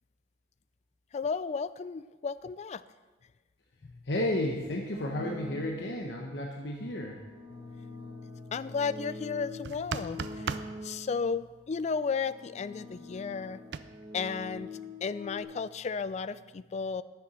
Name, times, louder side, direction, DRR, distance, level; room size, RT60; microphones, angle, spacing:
voice 1, 1.1-2.8 3.8-3.9 7.5-10.5 10.8-13.6 14.1-14.7 15.0-17.0, left 5 dB, 40° left, 15 dB, 0.3 m, -34 dB
voice 2, 4.1-7.2, left 1 dB, 75° left, 0 dB, 1.0 m, -32 dB
sound 1, 4.9-6.0 6.8-11.3 12.0-15.4, left 2 dB, 20° right, 1.3 m, -44 dB
sound 2, 9.6-10.7 13.7-13.8, right 5 dB, 70° right, 0.5 m, -35 dB
10.5 x 7.0 x 6.2 m, 1.2 s
head